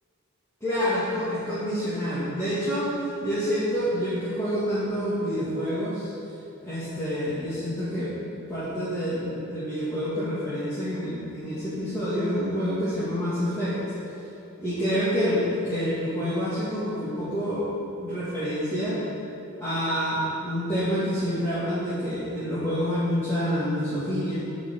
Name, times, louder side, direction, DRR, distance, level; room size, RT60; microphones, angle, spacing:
voice 1, 0.6-6.1 6.6-8.1 8.5-13.8 14.6-19.0 19.6-24.4, equal, 10° left, -13 dB, 2.4 m, -27 dB
9.0 x 5.2 x 7.4 m, 2.9 s
head